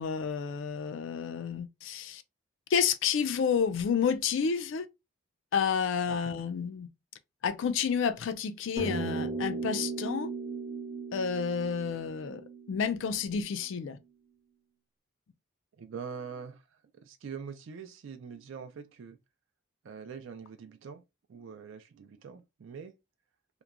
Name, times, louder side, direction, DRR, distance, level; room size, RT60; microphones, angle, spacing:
voice 1, 0.0-2.2 2.7-4.9 5.5-6.9 7.4-10.3 11.1-12.4 12.7-14.0, left 6 dB, 70° left, 0.3 m, -30 dB
sound 1, 8.8-13.4, right 4 dB, 25° right, 0.7 m, -37 dB
voice 2, 15.8-16.6 17.0-19.2 19.8-21.0 21.3-22.9, right 6 dB, 75° right, 0.3 m, -43 dB
2.9 x 2.2 x 2.3 m
head